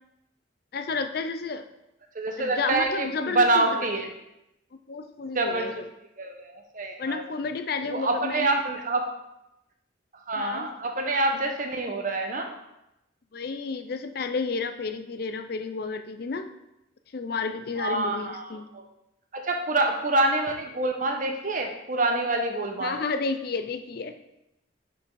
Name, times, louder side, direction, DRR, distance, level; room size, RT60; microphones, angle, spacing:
voice 1, 0.7-1.6 2.4-3.9 4.7-5.8 7.0-8.6 10.4-10.7 13.3-16.5 17.1-18.7 22.8-24.1, left 4 dB, 50° left, 8 dB, 0.4 m, -31 dB
voice 2, 2.1-4.1 5.3-5.8 6.2-7.2 7.9-9.1 10.3-12.5 17.8-18.8 19.3-23.0, right 2 dB, 40° right, 3 dB, 0.9 m, -26 dB
5.9 x 5.4 x 4.7 m, 0.89 s
head